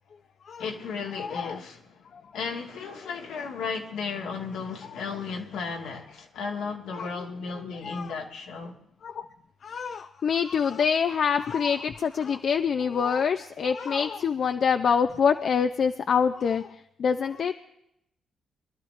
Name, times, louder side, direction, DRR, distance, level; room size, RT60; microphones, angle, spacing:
voice 1, 0.6-1.8 2.3-8.8, left 5 dB, 80° left, 1.8 m, -34 dB
voice 2, 1.2-1.6 2.1-2.2 4.9-5.0 7.8-8.1 9.0-9.3 9.6-17.5, left 6 dB, 60° left, 0.6 m, -26 dB
23.5 x 12.0 x 3.2 m
supercardioid pair, 55°, 0 cm